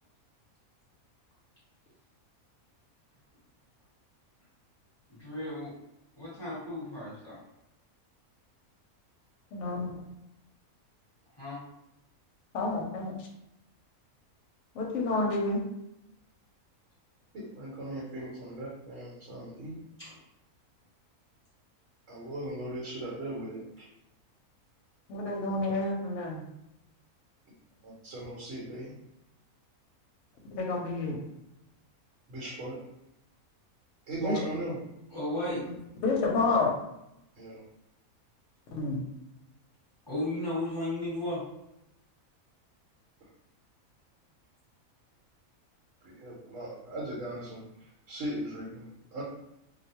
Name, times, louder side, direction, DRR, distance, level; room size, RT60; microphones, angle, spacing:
voice 1, 5.1-5.7 6.2-7.4 11.4-11.6 20.0-20.1 35.1-35.6 40.1-41.4, left 1 dB, 20° left, -10 dB, 1.2 m, -34 dB
voice 2, 9.5-9.9 12.5-13.3 14.7-15.6 25.1-26.4 30.5-31.2 34.2-34.4 35.7-36.7 38.7-39.0, left 3 dB, 65° left, 0 dB, 0.9 m, -29 dB
voice 3, 17.3-19.8 22.1-23.9 27.8-28.9 32.3-32.8 34.1-34.8 37.3-37.6 46.0-49.2, right 1 dB, 65° right, -6 dB, 1.1 m, -38 dB
2.6 x 2.1 x 2.8 m, 0.85 s
omnidirectional pair, 1.5 m